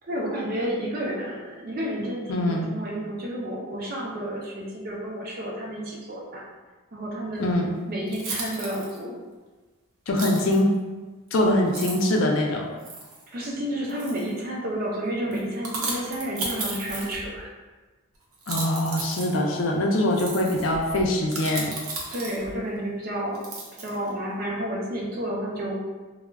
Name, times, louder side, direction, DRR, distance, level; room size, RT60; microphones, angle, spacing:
voice 1, 0.1-6.4 6.9-7.5 7.9-9.2 13.3-17.5 22.1-23.4 23.8-25.8, equal, 45° right, -3 dB, 0.5 m, -31 dB
voice 2, 2.3-2.7 7.4-7.7 10.1-10.7 11.3-12.7 18.5-21.7, left 1 dB, 65° left, 0 dB, 0.4 m, -23 dB
sound 1, 7.5-7.6 8.1-9.0 10.2-10.6 11.3-11.4 11.7-12.2 12.8-13.2 13.9-14.4 15.3-17.4 18.3-22.6 23.3-24.1, right 3 dB, 80° right, 0.6 m, -35 dB
2.2 x 2.0 x 3.4 m, 1.2 s
head